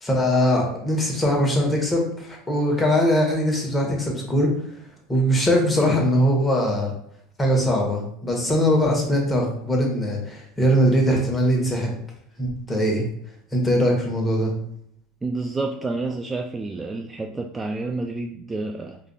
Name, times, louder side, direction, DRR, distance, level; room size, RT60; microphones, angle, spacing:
voice 1, 0.0-4.5 5.1-6.9 7.4-11.9 12.4-13.0 13.5-14.5, equal, 20° left, 0 dB, 1.2 m, -21 dB
voice 2, 15.2-19.0, right 3 dB, 20° right, 3 dB, 0.3 m, -29 dB
4.8 x 2.5 x 2.3 m, 0.69 s
hypercardioid pair, 75°, 0 cm